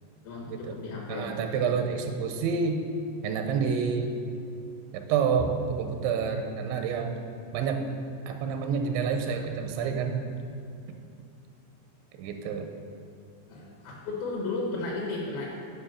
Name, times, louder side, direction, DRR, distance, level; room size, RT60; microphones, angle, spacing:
voice 1, 0.2-1.4 5.4-5.5 13.5-15.5, left 2 dB, 70° left, -2 dB, 2.5 m, -34 dB
voice 2, 1.1-2.8 3.2-4.1 4.9-7.1 7.5-7.9 8.3-10.2 10.9-11.0 12.1-12.7, right 6 dB, 85° right, 5 dB, 2.9 m, -28 dB
10.0 x 5.5 x 5.7 m, 2.6 s
omnidirectional pair, 5.2 m